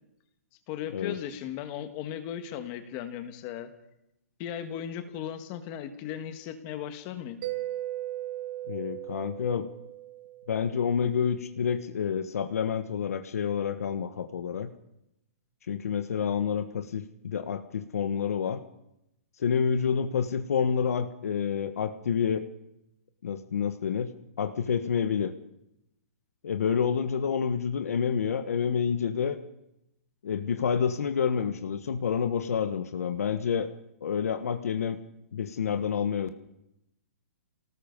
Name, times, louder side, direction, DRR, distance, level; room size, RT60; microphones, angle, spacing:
voice 1, 0.7-3.7 4.4-7.4, left 10 dB, 25° left, 9 dB, 1.6 m, -37 dB
Mallet percussion, 7.4-10.9, right 14 dB, 40° right, 2.0 m, -37 dB
voice 2, 8.7-9.7 10.5-14.7 15.7-18.6 19.4-22.4 23.2-24.1 24.4-25.3 26.4-29.4 30.2-33.7 34.0-35.0 35.3-36.3, left 7 dB, 70° left, 8 dB, 1.4 m, -28 dB
28.0 x 18.5 x 5.4 m, 0.86 s
hypercardioid pair, 170°, 8 cm